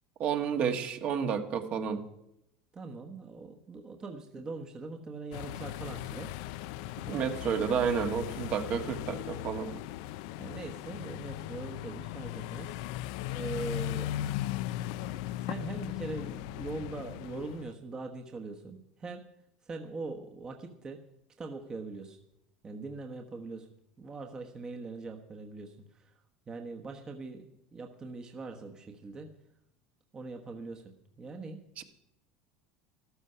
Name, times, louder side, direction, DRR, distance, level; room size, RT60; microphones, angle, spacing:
voice 1, 0.2-2.0 7.1-9.8 31.8-31.9, right 7 dB, 40° right, 6 dB, 1.4 m, -31 dB
voice 2, 2.7-6.7 7.1-7.4 10.4-12.8 13.3-14.2 15.0-19.2 19.6-21.0 21.4-22.2 22.6-23.7 24.0-26.2 26.5-27.4 27.7-29.3 30.1-31.6, right 3 dB, 20° right, 3 dB, 1.2 m, -42 dB
sound 1, 5.3-17.7, left 14 dB, 70° left, 0.5 m, -38 dB
13.5 x 13.0 x 5.6 m, 0.82 s
supercardioid pair, 145°, 4 cm